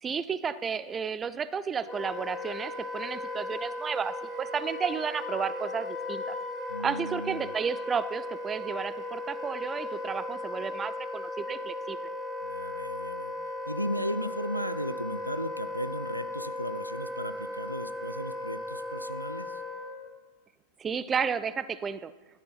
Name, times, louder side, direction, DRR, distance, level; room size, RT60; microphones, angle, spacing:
voice 1, 0.0-6.4 6.8-12.0 20.8-22.1, right 6 dB, 20° right, 15 dB, 0.5 m, -32 dB
Wind instrument woodwind instrument, 1.9-20.1, left 2 dB, ahead, 2.6 m, -37 dB
voice 2, 6.7-7.5 12.4-13.3 13.7-19.6, equal, 90° right, 16 dB, 0.4 m, -36 dB
12.0 x 8.1 x 4.0 m, 1.2 s
figure-of-eight pair, 90°, 0 cm